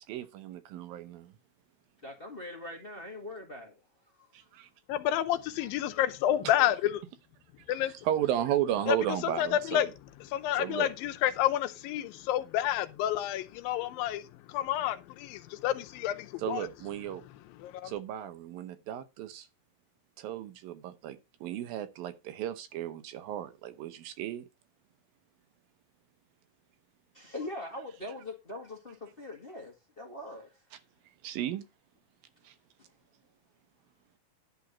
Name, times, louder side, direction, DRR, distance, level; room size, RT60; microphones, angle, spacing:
voice 1, 0.0-1.3 4.3-4.7 6.4-6.5 7.7-9.9 10.5-10.9 16.4-17.2 17.8-19.5 20.2-24.4 31.2-31.6 32.4-32.6, right 11 dB, 80° right, 2.8 m, -34 dB
voice 2, 2.0-3.7 4.2-4.3 5.6-6.0 27.1-30.5, left 1 dB, 30° left, 1.1 m, -42 dB
voice 3, 4.9-7.0 7.7-7.9 8.9-9.0 9.4-9.9 10.3-16.7 17.6-17.9, left 12 dB, 85° left, 2.5 m, -29 dB
11.0 x 4.0 x 7.1 m
omnidirectional pair, 4.1 m